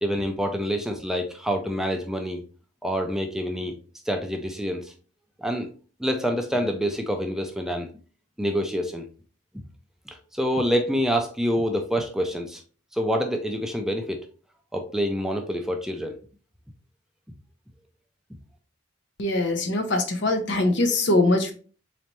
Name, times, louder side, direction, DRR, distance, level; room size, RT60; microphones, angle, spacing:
voice 1, 0.0-2.4 2.8-3.7 4.1-4.9 5.4-5.7 6.0-7.9 8.4-9.0 10.3-12.6 12.9-14.2 14.7-16.1, equal, ahead, 4 dB, 0.4 m, -26 dB
voice 2, 19.2-21.5, left 2 dB, 60° left, 6 dB, 0.7 m, -22 dB
4.0 x 3.3 x 2.9 m, 0.39 s
head